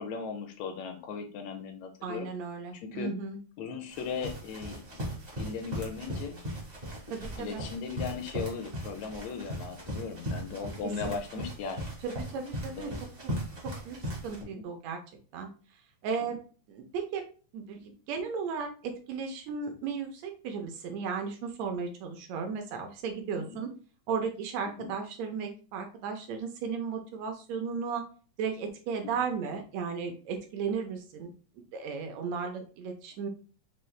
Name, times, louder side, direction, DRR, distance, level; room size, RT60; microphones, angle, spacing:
voice 1, 0.0-2.3 2.8-3.1 3.6-5.1 5.4-6.4 7.4-11.9 12.8-13.0 23.4-23.6 24.8-24.9 29.0-29.1, left 5 dB, 75° left, 6 dB, 1.7 m, -37 dB
voice 2, 2.0-3.4 7.1-7.6 10.8-11.1 12.0-12.9 13.9-14.0 14.2-15.0 15.3-15.5 16.0-16.4 16.7-17.2 17.5-23.7 24.1-28.0 28.4-31.3 31.7-33.3, right 5 dB, 75° right, 5 dB, 1.8 m, -35 dB
sound 1, 3.9-14.4, equal, 40° right, 0.5 m, -38 dB
5.5 x 2.3 x 3.2 m, 0.38 s
omnidirectional pair, 3.3 m